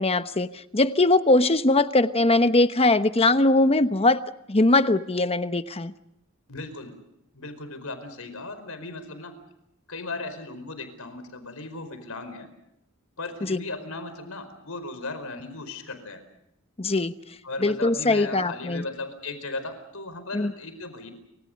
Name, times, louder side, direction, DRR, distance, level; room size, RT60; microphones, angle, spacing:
voice 1, 0.0-4.2 4.5-5.9 13.4-13.6 16.8-17.1 17.6-18.8 20.3-20.5, left 2 dB, 30° left, 11 dB, 1.0 m, -21 dB
voice 2, 6.5-7.0 7.3-9.4 9.9-12.5 13.2-16.2 17.4-21.1, left 2 dB, 80° left, 10 dB, 4.8 m, -37 dB
29.5 x 25.5 x 5.3 m, 0.81 s
head